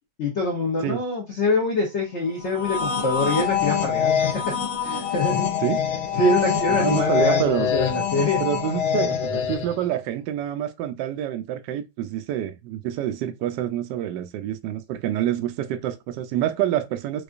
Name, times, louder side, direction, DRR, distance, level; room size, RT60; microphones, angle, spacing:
voice 1, 0.2-4.5 4.8-5.5 6.1-7.4 7.7-8.4, left 2 dB, 60° left, 0.7 m, -24 dB
sound 1, 2.5-9.8, left 8 dB, 85° left, 1.5 m, -24 dB
voice 2, 6.7-7.7 8.4-17.2, right 11 dB, 75° right, 1.1 m, -27 dB
4.8 x 2.3 x 2.4 m
omnidirectional pair, 2.2 m